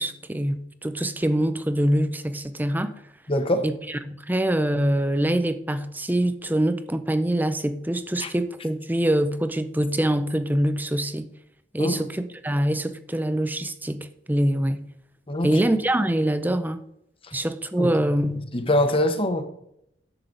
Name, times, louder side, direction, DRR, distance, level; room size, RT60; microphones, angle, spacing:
voice 1, 0.0-2.9 3.6-11.3 11.7-14.9 15.4-16.8 17.3-18.5, right 1 dB, 10° right, 0.6 m, -24 dB
voice 2, 3.3-3.6 8.2-8.3 11.8-12.0 15.3-15.5 17.8-17.9 18.5-19.4, left 1 dB, 30° left, 1.1 m, -23 dB
11.0 x 7.4 x 3.9 m
head